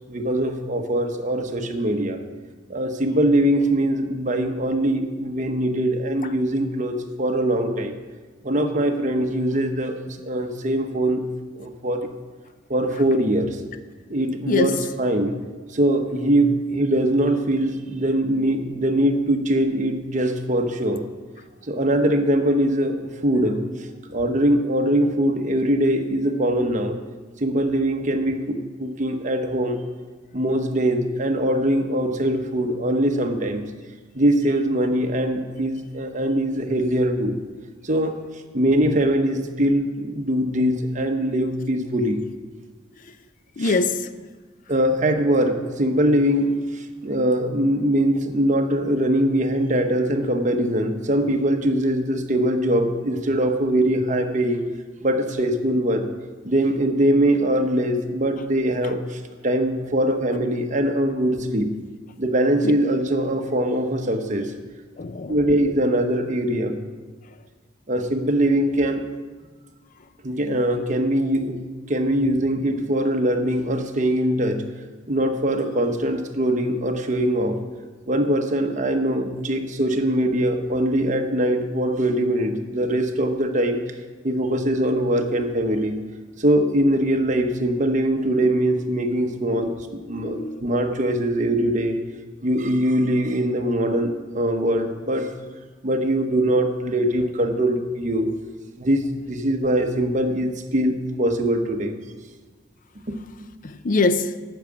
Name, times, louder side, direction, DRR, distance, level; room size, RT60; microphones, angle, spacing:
voice 1, 0.1-2.2 2.7-7.9 8.4-9.9 10.2-11.2 11.6-12.1 12.7-13.6 14.1-15.4 15.7-21.0 21.7-23.0 23.2-23.6 24.1-27.0 27.4-29.8 30.3-33.6 34.1-37.3 37.8-38.2 38.5-42.2 43.6-43.8 44.7-54.6 55.0-56.1 56.4-61.7 62.2-64.5 65.3-66.8 67.9-69.0 70.2-71.6 71.9-74.6 75.1-77.6 78.1-83.8 84.2-86.0 86.4-92.0 92.4-95.3 95.8-98.3 98.8-101.9 103.1-103.2, right 1 dB, 40° right, 1.0 m, -22 dB
voice 2, 14.5-14.8 43.6-44.1 65.0-65.4 89.7-89.8 90.2-90.6 103.6-104.4, left 3 dB, 45° left, 0.5 m, -23 dB
9.0 x 6.2 x 8.5 m
head